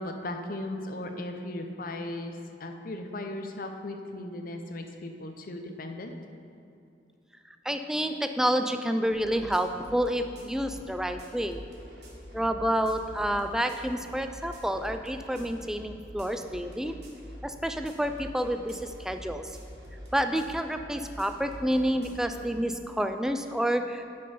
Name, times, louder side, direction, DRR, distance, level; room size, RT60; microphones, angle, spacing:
voice 1, 0.0-6.1 11.0-11.1, left 1 dB, 50° left, 5 dB, 0.7 m, -37 dB
voice 2, 7.7-11.6 12.3-16.9 17.4-19.5 20.1-24.0, equal, 5° right, 7 dB, 0.3 m, -29 dB
sound 1, 9.1-22.4, equal, 65° right, 1.6 m, -46 dB
9.5 x 5.3 x 5.4 m, 2.6 s
head